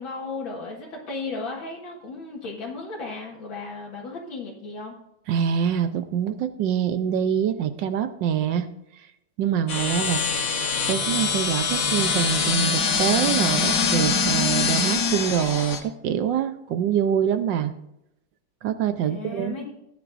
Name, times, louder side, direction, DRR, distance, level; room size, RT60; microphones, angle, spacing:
voice 1, 0.0-4.9 19.0-19.7, left 3 dB, 75° left, -3 dB, 2.4 m, -35 dB
voice 2, 5.3-8.7 9.4-10.2 10.9-17.7 18.6-19.5, right 9 dB, 70° right, 10 dB, 1.3 m, -25 dB
sound 1, 9.7-15.8, left 5 dB, 50° left, 1.4 m, -24 dB
16.5 x 9.5 x 2.5 m, 0.82 s
omnidirectional pair, 2.2 m